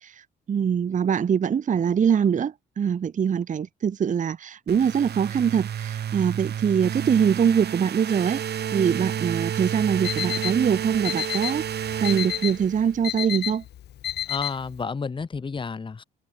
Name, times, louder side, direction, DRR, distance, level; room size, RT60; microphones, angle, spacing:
voice 1, 0.0-8.4 8.7-11.6 12.0-13.6, right 7 dB, 40° right, 0.8 m, -23 dB
sound 1, 4.7-13.0, right 9 dB, 55° right, 1.2 m, -31 dB
Alarm, 9.8-14.8, left 12 dB, 55° left, 0.5 m, -31 dB
voice 2, 14.3-16.0, left 5 dB, 25° left, 0.9 m, -31 dB
cardioid pair, 90°, 20 cm